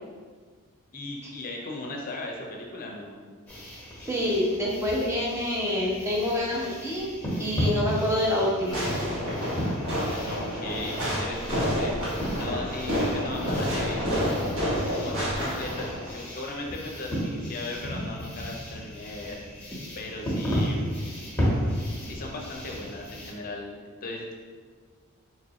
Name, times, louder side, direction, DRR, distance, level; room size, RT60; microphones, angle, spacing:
voice 1, 0.9-3.2 10.3-14.5 14.9-19.4 20.0-21.0 22.0-23.7 24.0-24.3, left 2 dB, 40° left, 0 dB, 0.6 m, -37 dB
sound 1, 3.5-23.3, equal, 10° left, 1.0 m, -34 dB
voice 2, 4.1-7.1 7.4-8.9, left 1 dB, 15° right, -4 dB, 0.6 m, -26 dB
Fireworks, 8.7-16.1, equal, 65° right, 1.2 m, -29 dB
3.9 x 3.0 x 2.8 m, 1.6 s
head